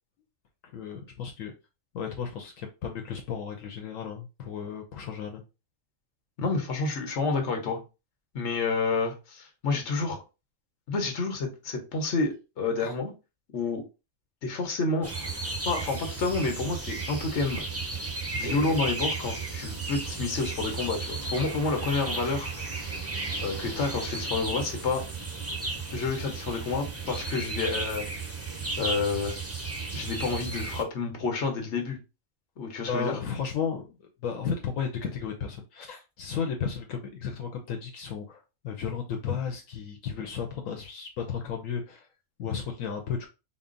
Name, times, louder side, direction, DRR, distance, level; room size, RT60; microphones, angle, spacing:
voice 1, 0.7-1.5 1.9-5.4 12.8-12.9 32.9-33.9 34.2-42.1 42.4-43.3, left 6 dB, 80° left, 1.1 m, -34 dB
voice 2, 6.4-7.8 8.3-10.2 10.9-13.1 13.5-13.8 14.4-15.1 15.6-17.6 18.3-22.5 23.4-25.0 25.9-28.1 28.8-29.4 29.9-32.0 32.6-33.2, left 4 dB, 60° left, 1.3 m, -29 dB
sound 1, 15.0-30.8, right 3 dB, 20° right, 0.4 m, -34 dB
4.2 x 2.0 x 3.8 m
omnidirectional pair, 1.4 m